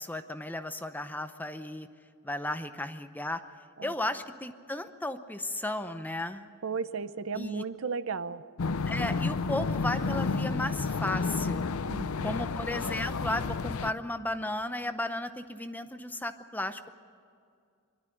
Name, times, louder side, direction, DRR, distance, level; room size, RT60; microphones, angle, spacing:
voice 1, 0.0-1.9 2.2-3.4 3.8-6.5 7.3-7.6 8.9-11.6 12.2-16.9, left 1 dB, 10° left, 9 dB, 0.7 m, -34 dB
voice 2, 6.6-8.4 11.9-12.3, right 5 dB, 65° right, 13 dB, 0.7 m, -34 dB
sound 1, 8.6-13.9, left 4 dB, 80° left, 0.6 m, -31 dB
24.5 x 12.5 x 10.0 m, 2.3 s
head